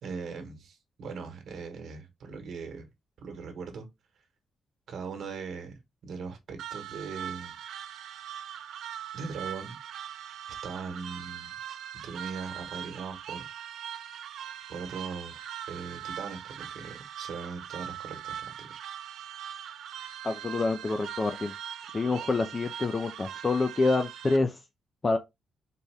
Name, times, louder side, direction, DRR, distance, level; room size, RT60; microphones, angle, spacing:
voice 1, 0.0-2.9 3.2-3.9 4.9-7.5 9.1-9.8 10.6-11.5 12.0-13.5 14.7-18.8, right 5 dB, 55° right, 1.2 m, -40 dB
sound 1, 6.6-24.4, right 10 dB, 80° right, 0.6 m, -41 dB
voice 2, 20.2-21.5 21.9-24.6 25.0-25.2, left 3 dB, 20° left, 0.4 m, -27 dB
4.1 x 3.4 x 3.3 m
wide cardioid pair, 180°, 0 cm